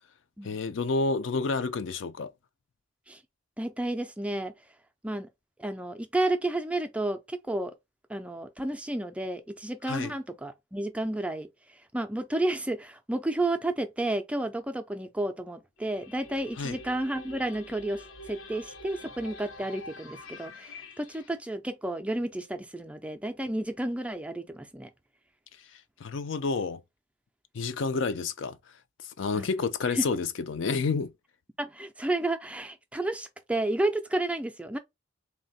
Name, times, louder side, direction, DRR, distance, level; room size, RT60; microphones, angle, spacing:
voice 1, 0.4-2.3 9.8-10.1 16.6-16.8 25.7-26.8 27.5-28.6 29.0-31.1, left 4 dB, 65° left, 0.4 m, -30 dB
voice 2, 3.6-4.5 5.0-5.3 5.6-7.7 8.1-24.9 29.4-29.5 29.9-30.0 31.6-34.8, right 1 dB, 5° right, 0.4 m, -31 dB
sound 1, 15.8-21.3, left 2 dB, 90° left, 0.9 m, -46 dB
3.5 x 2.2 x 4.0 m
head